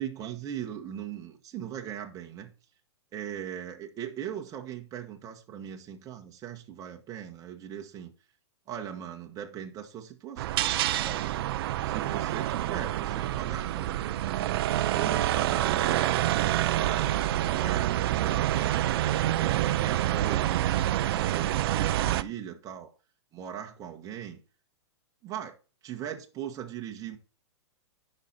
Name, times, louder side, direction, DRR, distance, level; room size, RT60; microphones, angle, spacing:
voice 1, 0.0-2.5 3.1-8.1 8.7-11.3 11.8-14.4 14.9-16.2 16.7-17.1 17.4-18.8 19.4-20.6 21.0-22.9 23.3-24.4 25.2-25.5 25.8-27.2, right 9 dB, 25° right, 1.4 m, -39 dB
sound 1, 10.4-22.2, right 13 dB, 55° right, 0.5 m, -27 dB
9.8 x 5.5 x 4.2 m
hypercardioid pair, 140°, 15 cm